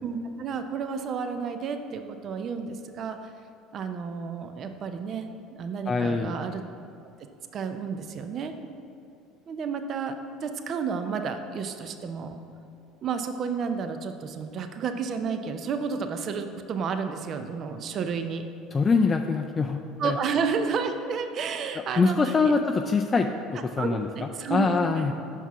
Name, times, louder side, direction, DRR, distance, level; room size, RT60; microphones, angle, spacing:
voice 1, 0.0-3.2 3.7-6.6 7.5-8.5 9.5-10.2 10.4-12.4 13.0-18.4 20.0-22.5 23.8-25.1, right 5 dB, 50° right, 8 dB, 0.5 m, -31 dB
voice 2, 5.9-6.3 18.7-20.2 22.0-24.1 24.5-25.1, left 4 dB, 30° left, 4 dB, 0.3 m, -24 dB
5.6 x 4.6 x 5.9 m, 2.6 s
hypercardioid pair, 80°, 0 cm